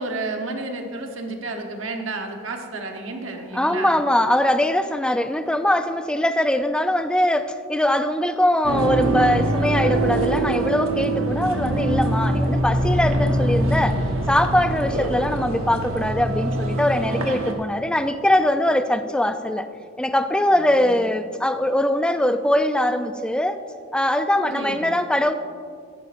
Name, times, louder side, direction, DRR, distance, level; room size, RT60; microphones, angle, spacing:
voice 1, 0.0-4.0 17.3-17.6 20.5-21.0 24.4-25.0, right 2 dB, 70° right, 3 dB, 1.1 m, -32 dB
voice 2, 3.5-14.0 14.3-19.7 20.0-23.6 23.9-25.3, left 1 dB, 5° left, 9 dB, 0.4 m, -21 dB
sound 1, 8.6-17.5, right 1 dB, 85° right, 1.2 m, -23 dB
14.5 x 11.0 x 2.6 m, 2.3 s
head